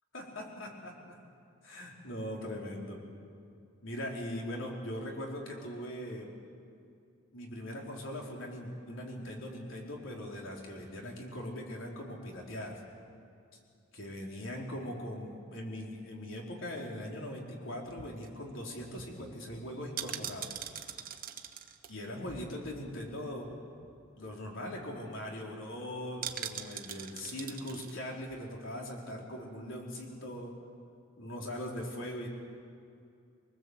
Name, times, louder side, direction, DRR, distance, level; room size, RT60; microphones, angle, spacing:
voice 1, 0.1-1.2 1.6-3.0 3.8-6.3 7.3-12.8 13.9-20.5 21.9-23.5 24.2-30.6 31.2-32.3, left 1 dB, 70° left, -1 dB, 4.0 m, -40 dB
sound 1, 17.9-23.1 23.4-23.5 23.8-24.1 24.4-24.5 24.8-25.2 26.2-27.9 28.3-28.4, right 9 dB, 45° right, 1.3 m, -43 dB
24.5 x 19.5 x 8.0 m, 2.4 s
head